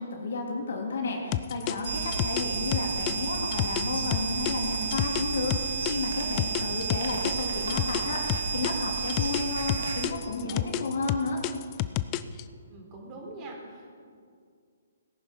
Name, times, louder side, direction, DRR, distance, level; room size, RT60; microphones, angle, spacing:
voice 1, 0.0-11.4, left 3 dB, 70° left, 0 dB, 3.0 m, -32 dB
sound 1, 1.3-5.9 6.4-9.4 9.7-12.4, left 15 dB, 30° left, 0.5 m, -30 dB
sound 2, 1.8-10.1, right 5 dB, 70° right, 2.1 m, -32 dB
voice 2, 6.2-6.5 12.7-14.0, right 2 dB, 30° right, 0 dB, 3.7 m, -44 dB
18.0 x 10.5 x 5.4 m, 2.2 s
hypercardioid pair, 140°, 0 cm